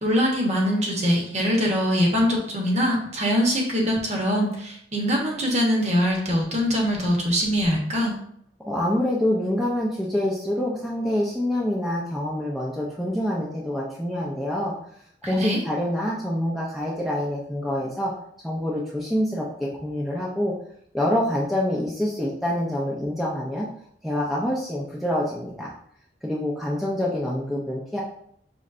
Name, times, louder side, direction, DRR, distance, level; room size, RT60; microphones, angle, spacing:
voice 1, 0.0-8.2 15.4-15.6, equal, 40° right, -1 dB, 1.0 m, -23 dB
voice 2, 8.7-14.7 15.2-18.1 18.4-20.5 20.9-23.7 24.0-25.7 26.2-28.0, left 1 dB, ahead, -5 dB, 0.5 m, -26 dB
5.3 x 3.1 x 2.5 m, 0.67 s
head